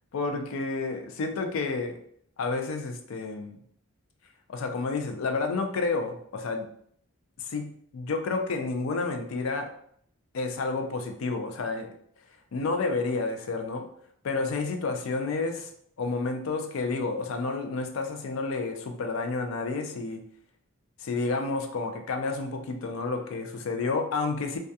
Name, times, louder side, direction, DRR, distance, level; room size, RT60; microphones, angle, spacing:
voice 1, 0.1-2.0 2.4-3.6 4.5-6.7 7.4-9.7 10.3-11.9 12.5-13.9 14.2-15.7 16.0-20.2 21.0-24.6, left 3 dB, 70° left, 5 dB, 0.4 m, -30 dB
2.3 x 2.2 x 2.7 m, 0.65 s
head